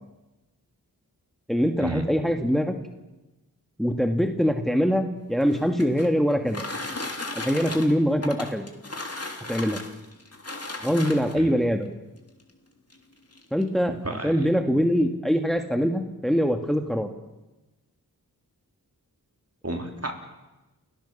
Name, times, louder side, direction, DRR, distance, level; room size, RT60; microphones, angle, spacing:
voice 1, 1.5-2.7 3.8-6.6 7.3-8.7 9.5-9.8 10.8-11.9 13.5-13.9 14.2-17.1, equal, ahead, 5 dB, 2.0 m, -23 dB
sound 1, 5.3-11.5 12.4-12.5 12.9-13.0 13.3-13.7, left 2 dB, 40° left, 3.1 m, -36 dB
voice 2, 14.0-14.4 19.6-20.1, right 2 dB, 40° right, 3 dB, 3.9 m, -31 dB
29.5 x 17.0 x 7.3 m, 1.1 s
cardioid pair, 45°, 38 cm